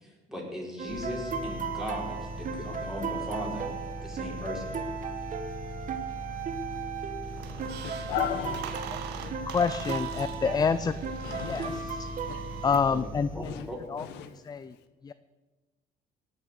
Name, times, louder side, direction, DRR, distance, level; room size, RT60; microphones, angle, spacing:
voice 1, 0.0-3.7 4.0-4.8 7.8-7.9 8.7-8.9 13.3-13.8, equal, 5° right, -2 dB, 4.6 m, -38 dB
sound 1, 0.8-12.8, right 5 dB, 50° right, 1.3 m, -36 dB
sound 2, 0.9-13.8, left 1 dB, 55° left, 3.1 m, -41 dB
Squeak, 7.2-13.0, right 9 dB, 85° right, 1.2 m, -44 dB
voice 2, 7.8-8.6 11.2-11.8 12.3-12.4 13.4-13.6, left 11 dB, 85° left, 10 dB, 1.1 m, -34 dB
voice 3, 9.5-11.0 11.4-12.1 12.6-14.0 14.5-14.7 15.0-15.1, left 6 dB, 25° left, 14 dB, 0.4 m, -28 dB
17.5 x 6.7 x 8.1 m, 1.2 s
cardioid pair, 110°, 17 cm